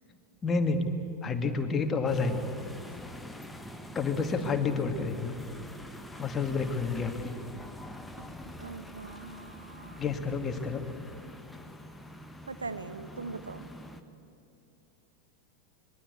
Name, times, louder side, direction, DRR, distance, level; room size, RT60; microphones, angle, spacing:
voice 1, 0.4-0.9 1.2-2.4 3.9-5.4 6.2-7.3 10.0-10.8, left 4 dB, 20° left, 6 dB, 2.2 m, -29 dB
sound 1, 2.1-14.0, left 1 dB, 5° left, 1.4 m, -45 dB
voice 2, 8.6-10.2 12.5-13.7, right 4 dB, 75° right, 12 dB, 1.0 m, -41 dB
25.5 x 22.0 x 8.4 m, 2.6 s
figure-of-eight pair, 90°, 0 cm